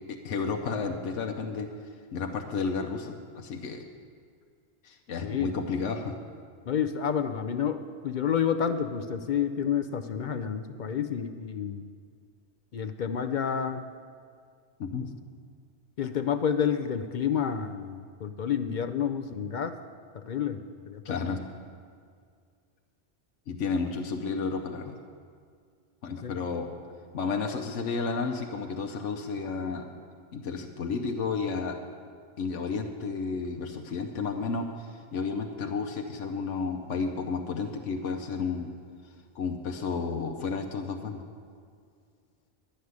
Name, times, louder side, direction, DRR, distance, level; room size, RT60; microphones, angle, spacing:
voice 1, 0.1-1.7 2.1-3.8 4.8-6.2 14.8-15.1 21.0-21.4 23.5-25.0 26.0-26.7 27.1-29.9 30.3-31.8 32.4-38.7 39.3-41.2, left 4 dB, 85° left, 3 dB, 1.1 m, -32 dB
voice 2, 5.2-5.6 6.7-11.9 12.7-13.9 16.0-19.8 20.1-21.4 26.1-26.4, left 8 dB, 55° left, 9 dB, 0.6 m, -30 dB
11.5 x 6.6 x 9.5 m, 2.1 s
omnidirectional pair, 1.2 m